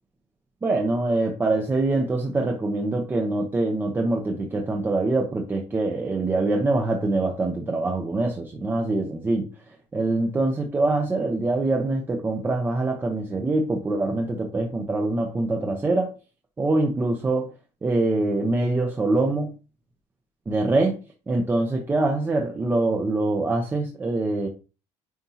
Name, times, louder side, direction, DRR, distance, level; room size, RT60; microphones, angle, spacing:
voice 1, 0.6-9.7 9.9-16.1 16.6-17.5 17.8-19.5 20.5-21.0 21.3-24.5, right 2 dB, 15° right, 0.8 m, -24 dB
9.4 x 4.3 x 2.8 m
cardioid pair, 160°, 13 cm